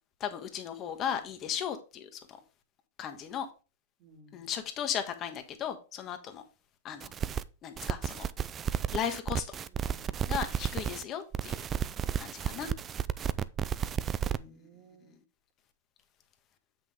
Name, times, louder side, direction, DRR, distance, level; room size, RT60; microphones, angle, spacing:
voice 1, 0.2-2.4 3.0-3.5 4.3-6.4 6.8-7.1 7.6-8.3 8.9-9.6 10.3-11.6 12.2-12.7 14.2-14.6, left 8 dB, 35° left, 1.5 m, -36 dB
voice 2, 4.0-4.5 9.6-10.3 13.6-15.2, equal, 45° right, 2.1 m, -57 dB
TV glitch, 7.0-7.4 7.8-11.0 11.3-14.4, right 9 dB, 25° right, 0.4 m, -32 dB
7.5 x 6.1 x 3.6 m
hypercardioid pair, 120°, 0 cm